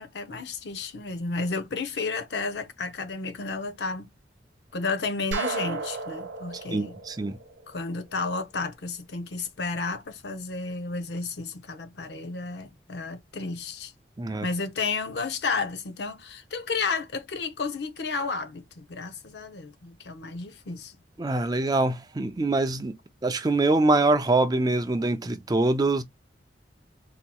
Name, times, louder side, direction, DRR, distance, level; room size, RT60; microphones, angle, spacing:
voice 1, 0.0-4.1 4.7-7.0 7.7-13.9 14.4-20.9, left 4 dB, 70° left, 0.6 m, -32 dB
sound 1, 5.3-8.1, right 3 dB, 85° right, 0.6 m, -34 dB
voice 2, 6.7-7.4 14.2-14.5 21.2-23.0 23.2-26.0, right 2 dB, 20° right, 0.4 m, -24 dB
4.1 x 2.8 x 2.2 m
head